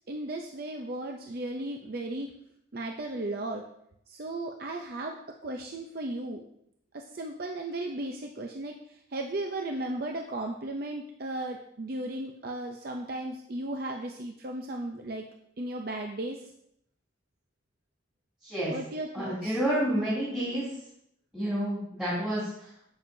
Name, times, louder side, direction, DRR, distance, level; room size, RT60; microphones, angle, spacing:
voice 1, 0.1-2.3 2.7-3.6 4.1-5.2 5.4-6.4 6.9-15.3 15.6-16.5 18.7-19.6, right 1 dB, 50° right, 3 dB, 0.5 m, -35 dB
voice 2, 18.4-18.7 19.1-20.8 21.3-22.9, right 1 dB, 5° right, -12 dB, 2.6 m, -30 dB
9.6 x 7.8 x 2.7 m, 0.74 s
head